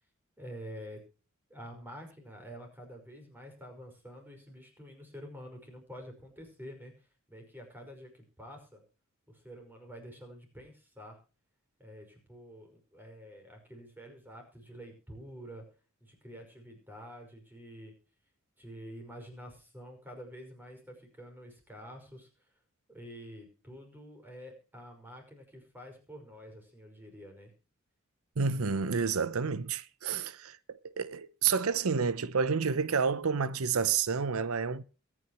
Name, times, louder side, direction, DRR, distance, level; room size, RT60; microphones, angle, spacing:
voice 1, 0.4-1.0 1.5-6.9 7.3-8.8 9.3-11.2 11.8-15.7 16.0-17.9 18.6-22.3 22.9-27.5, equal, 10° right, 5.6 m, -48 dB
voice 2, 28.4-34.8, right 5 dB, 85° right, 0.7 m, -30 dB
23.0 x 10.0 x 3.0 m
head